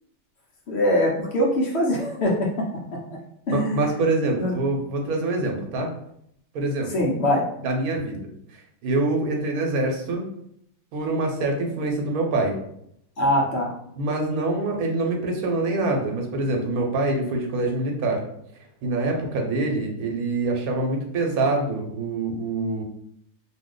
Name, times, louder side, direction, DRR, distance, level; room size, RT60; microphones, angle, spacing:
voice 1, 0.7-2.7 3.5-3.8 4.4-4.5 6.9-7.4 13.2-13.7, left 1 dB, 60° left, -2 dB, 0.8 m, -22 dB
voice 2, 3.5-5.9 6.5-6.9 7.6-10.2 10.9-12.6 13.9-18.2 18.8-22.8, right 2 dB, 85° right, 2 dB, 1.2 m, -25 dB
2.7 x 2.4 x 3.7 m, 0.72 s
omnidirectional pair, 1.5 m